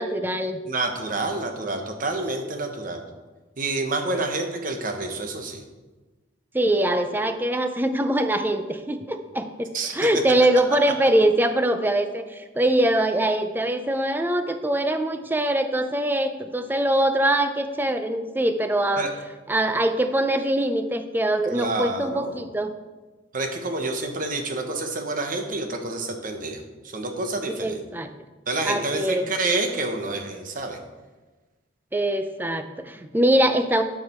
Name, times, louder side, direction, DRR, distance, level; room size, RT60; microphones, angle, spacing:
voice 1, 0.0-0.6 4.1-4.3 6.5-19.1 19.5-22.7 27.5-28.1 28.6-29.3 31.9-33.8, right 1 dB, 10° right, 8 dB, 0.5 m, -23 dB
voice 2, 0.7-3.0 3.6-5.6 9.7-10.0 19.0-19.1 21.5-22.4 23.3-26.6 26.9-27.8 28.5-30.8, right 2 dB, 45° right, 5 dB, 1.0 m, -28 dB
12.0 x 4.9 x 4.4 m, 1.2 s
head